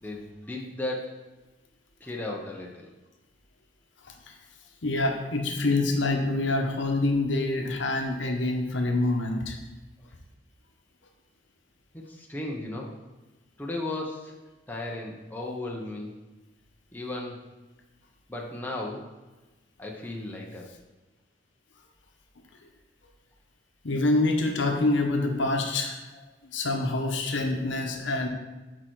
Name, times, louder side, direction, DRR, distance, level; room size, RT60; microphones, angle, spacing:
voice 1, 0.0-1.2 2.0-2.9 11.9-12.9 13.6-14.4 14.7-16.1 16.9-17.4 18.3-19.1 19.8-20.7, left 2 dB, 10° left, -2 dB, 0.7 m, -35 dB
voice 2, 4.8-9.6 23.8-26.0 26.5-28.3, left 2 dB, 70° left, 3 dB, 0.9 m, -26 dB
6.7 x 4.5 x 4.5 m, 1.2 s
head